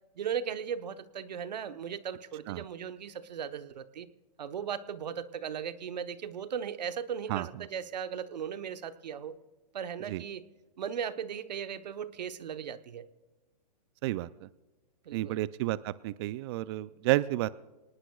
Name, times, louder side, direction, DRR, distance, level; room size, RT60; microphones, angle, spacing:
voice 1, 0.2-4.1 4.4-9.4 9.7-10.5 10.8-13.1 15.0-15.4, right 8 dB, 85° right, 11 dB, 1.0 m, -37 dB
voice 2, 14.0-14.5 15.1-17.5, right 16 dB, 40° right, 17 dB, 0.4 m, -31 dB
24.5 x 19.0 x 2.3 m, 1.2 s
hypercardioid pair, 140°, 21 cm